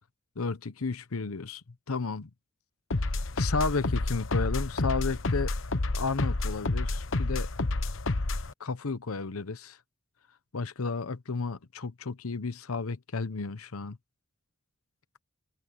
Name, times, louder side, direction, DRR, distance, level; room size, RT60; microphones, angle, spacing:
voice 1, 0.4-2.3 3.0-5.5 5.9-7.5 8.6-9.8 10.5-14.0, left 4 dB, 80° left, 0.9 m, -33 dB
sound 1, 2.9-8.5, left 2 dB, 60° left, 1.1 m, -29 dB
head